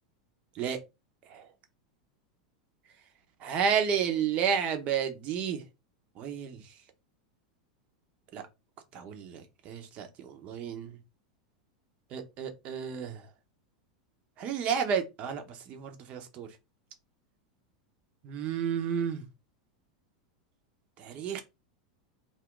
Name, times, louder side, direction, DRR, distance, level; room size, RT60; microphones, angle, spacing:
voice 1, 3.4-5.6 6.2-6.6 8.3-8.4 8.9-11.0 12.1-13.2 14.4-16.5 18.2-19.2 21.0-21.4, right 7 dB, 45° right, 0.8 m, -31 dB
2.5 x 2.1 x 3.7 m
hypercardioid pair, 95°, 3 cm